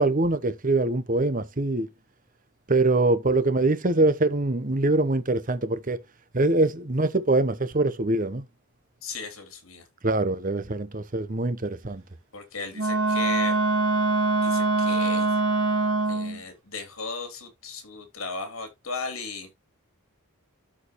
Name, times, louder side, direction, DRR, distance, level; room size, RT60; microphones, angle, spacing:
voice 1, 0.0-1.9 2.7-6.0 6.3-8.4 10.0-12.0, right 2 dB, 40° right, 0.9 m, -23 dB
voice 2, 9.0-9.9 12.3-13.5 14.4-15.4 16.1-19.5, left 4 dB, 70° left, 3.1 m, -36 dB
Wind instrument woodwind instrument, 12.7-16.4, right 2 dB, 75° right, 1.9 m, -23 dB
13.0 x 4.8 x 3.1 m
head